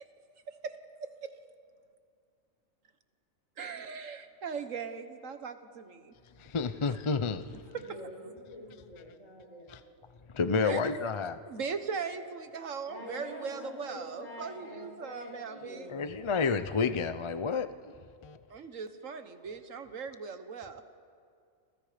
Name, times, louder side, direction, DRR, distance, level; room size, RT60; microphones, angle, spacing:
voice 1, 3.6-6.1 7.7-8.0 10.6-11.1 11.5-15.9 18.5-20.8, right 5 dB, 75° right, 1.6 m, -39 dB
voice 2, 6.4-7.6 9.7-9.8 10.3-11.4 15.9-17.7 18.2-18.4, left 5 dB, 35° left, 0.5 m, -30 dB
voice 3, 7.7-9.8 12.9-16.0, left 1 dB, 70° left, 6.2 m, -45 dB
28.0 x 27.5 x 5.1 m
omnidirectional pair, 1.4 m